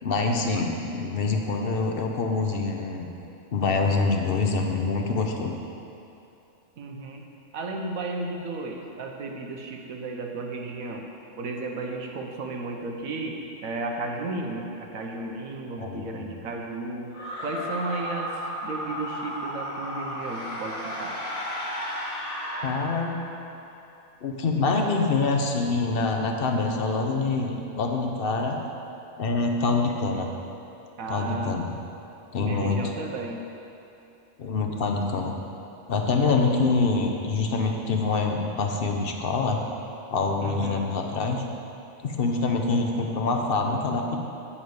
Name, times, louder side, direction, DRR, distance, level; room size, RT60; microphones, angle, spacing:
voice 1, 0.0-3.1 3.5-5.5 15.8-16.3 22.6-23.2 24.2-28.6 29.2-30.3 31.1-31.7 32.3-32.8 34.4-35.3 35.9-39.6 40.1-41.4 42.0-44.2, left 3 dB, 50° left, 2 dB, 0.8 m, -25 dB
voice 2, 6.8-7.2 7.5-11.1 11.4-17.1 17.4-18.3 18.6-21.2 31.0-31.6 32.3-33.4 40.4-40.9, right 2 dB, 80° right, 2 dB, 1.3 m, -34 dB
sound 1, 17.1-23.6, equal, 80° left, 2.0 m, -34 dB
8.8 x 7.2 x 4.7 m, 2.8 s
omnidirectional pair, 1.4 m